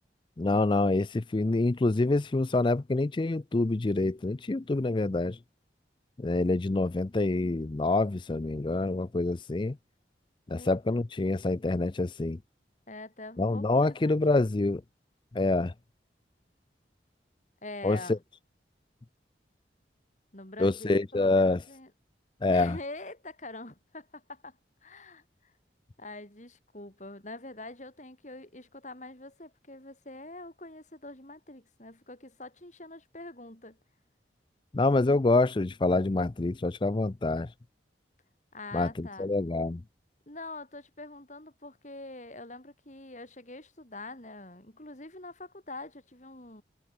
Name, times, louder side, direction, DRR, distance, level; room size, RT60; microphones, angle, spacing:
voice 1, 0.4-5.4 6.2-9.8 10.5-12.4 13.4-14.8 15.3-15.7 17.8-18.2 20.6-21.6 22.4-22.8 34.7-37.5 38.7-39.8, left 2 dB, 25° left, 0.4 m, -26 dB
voice 2, 10.6-11.0 12.9-14.2 17.6-18.2 20.3-21.9 22.5-25.5 26.0-33.8 38.5-39.3 40.3-46.6, left 2 dB, 40° left, 4.4 m, -44 dB
head